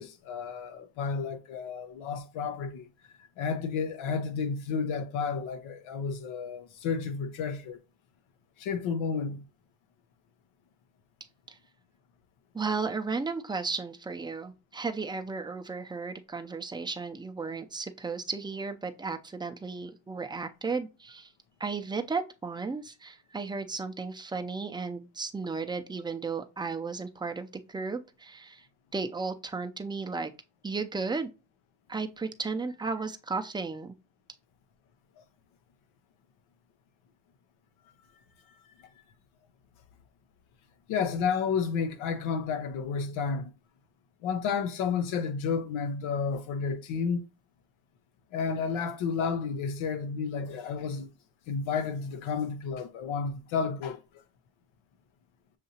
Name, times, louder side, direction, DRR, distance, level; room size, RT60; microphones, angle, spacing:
voice 1, 0.0-2.9 3.4-7.8 8.6-9.4 40.9-43.5 44.2-47.3 48.3-51.1 51.5-54.0, left 5 dB, 85° left, 0.8 m, -31 dB
voice 2, 12.5-21.3 21.6-28.7 28.9-30.3 30.6-31.3 31.9-33.9, right 4 dB, 10° right, 0.4 m, -34 dB
6.6 x 2.7 x 2.8 m
cardioid pair, 80°, 46 cm